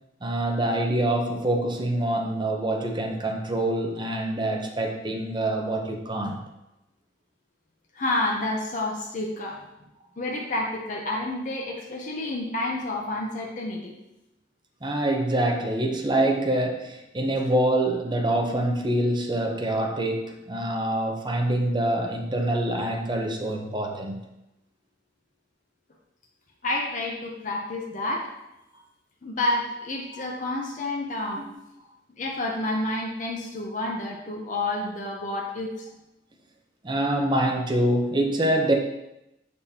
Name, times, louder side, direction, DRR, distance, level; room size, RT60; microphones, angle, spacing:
voice 1, 0.2-6.4 14.8-24.2 30.1-30.2 31.4-31.6 36.8-38.7, right 1 dB, 25° right, 2 dB, 0.8 m, -25 dB
voice 2, 7.9-9.6 10.2-13.9 26.6-28.3 29.2-31.4 32.2-35.9, left 2 dB, 45° left, -1 dB, 0.7 m, -29 dB
6.9 x 5.1 x 2.8 m, 0.91 s
head